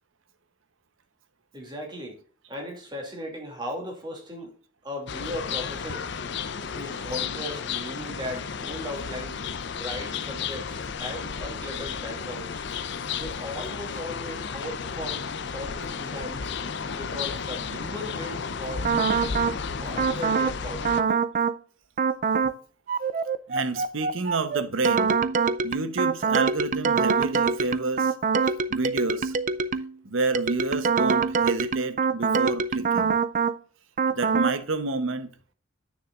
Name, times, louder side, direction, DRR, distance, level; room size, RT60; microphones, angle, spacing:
voice 1, 1.5-2.2 2.5-4.5 4.8-6.1 6.6-12.6 13.1-15.2 15.5-16.5 16.9-19.5 19.8-21.2, left 1 dB, 20° right, 2.5 m, -37 dB
sound 1, 5.1-21.0, left 6 dB, 60° left, 0.6 m, -33 dB
sound 2, 18.8-19.6 20.0-20.6 20.8-21.6 22.0-22.6 22.9-29.9 30.3-33.6 34.0-34.6, right 5 dB, 40° right, 0.4 m, -24 dB
voice 2, 23.5-25.1 25.6-28.1 28.7-29.3 30.0-33.1 34.1-35.3, right 3 dB, 80° right, 0.9 m, -29 dB
9.9 x 6.2 x 2.4 m
head